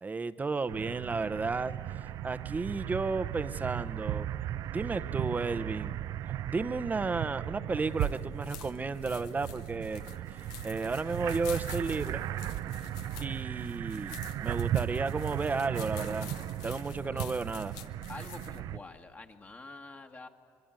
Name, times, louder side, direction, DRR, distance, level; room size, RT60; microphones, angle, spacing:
voice 1, 0.0-1.7 2.2-4.3 4.7-6.0 6.5-10.0 10.3-12.2 13.2-16.3 16.6-17.8, right 4 dB, 25° right, 12 dB, 0.9 m, -33 dB
sound 1, 0.7-18.8, right 12 dB, 65° right, 0.6 m, -36 dB
sound 2, 7.8-18.6, left 10 dB, 80° left, 1.0 m, -49 dB
voice 2, 18.1-20.3, left 3 dB, 25° left, 4 dB, 1.7 m, -47 dB
25.0 x 21.5 x 9.0 m, 2.2 s
supercardioid pair, 75°, 7 cm